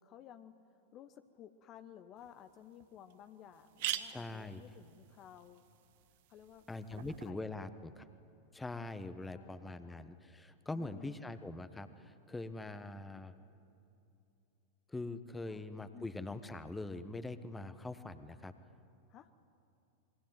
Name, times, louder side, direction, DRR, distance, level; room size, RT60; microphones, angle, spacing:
voice 1, 0.0-5.6 6.3-7.4 9.2-10.1 10.7-11.3 15.5-15.6 15.9-16.1 19.1-19.3, left 10 dB, 35° left, 10 dB, 1.0 m, -56 dB
sound 1, 2.2-2.3 2.8-2.9 3.1-3.2 3.5-7.3, right 13 dB, 50° right, 1.1 m, -44 dB
voice 2, 4.1-4.6 6.7-8.1 8.5-13.3 14.9-18.5, left 2 dB, 10° left, 12 dB, 1.3 m, -43 dB
27.0 x 22.0 x 9.2 m, 2.7 s
figure-of-eight pair, 90°, 0 cm